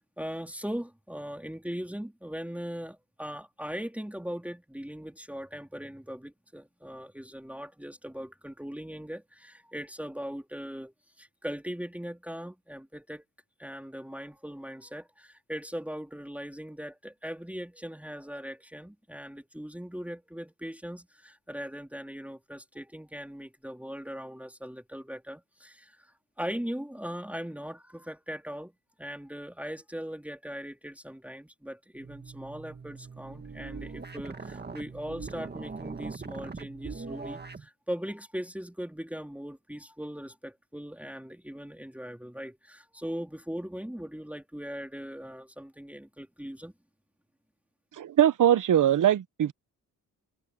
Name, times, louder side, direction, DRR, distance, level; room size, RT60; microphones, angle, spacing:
voice 1, 0.2-13.2 13.6-28.7 29.0-46.7, equal, 5° right, 3.3 m, -39 dB
sound 1, 32.0-37.7, right 4 dB, 25° right, 1.8 m, -41 dB
voice 2, 48.0-49.5, right 10 dB, 55° right, 0.8 m, -22 dB
cardioid pair, 100°, 38 cm